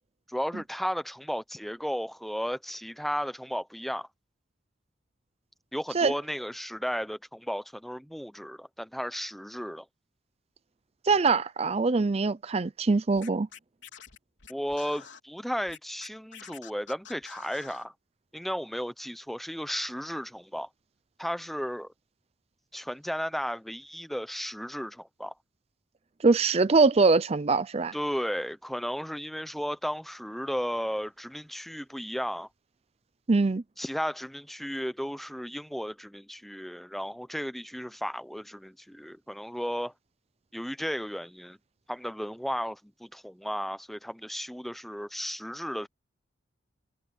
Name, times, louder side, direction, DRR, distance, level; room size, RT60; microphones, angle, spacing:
voice 1, 0.3-4.1 5.7-9.9 14.5-17.9 18.3-20.7 21.2-21.9 22.7-25.3 27.9-32.5 33.8-39.9 40.5-41.6 41.9-45.9, equal, ahead, 0.7 m, -34 dB
voice 2, 11.1-13.5 26.2-27.9 33.3-33.6, right 4 dB, 30° right, 0.5 m, -23 dB
Scratching (performance technique), 13.1-15.2 15.7-17.9, left 7 dB, 70° left, 4.2 m, -48 dB
head